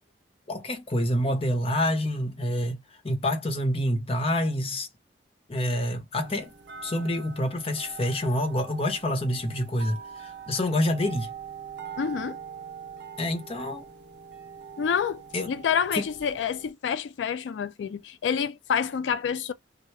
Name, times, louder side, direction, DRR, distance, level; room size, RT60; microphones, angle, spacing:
voice 1, 0.5-2.8 3.0-4.9 5.5-6.5 6.8-11.3 13.2-13.9 15.3-15.5 15.9-16.1, left 1 dB, 30° left, 0.7 m, -27 dB
sound 1, 6.2-16.7, right 7 dB, 70° right, 0.6 m, -43 dB
voice 2, 12.0-12.4 14.8-15.2 15.5-19.5, left 7 dB, 85° left, 0.3 m, -28 dB
2.8 x 2.3 x 3.1 m
head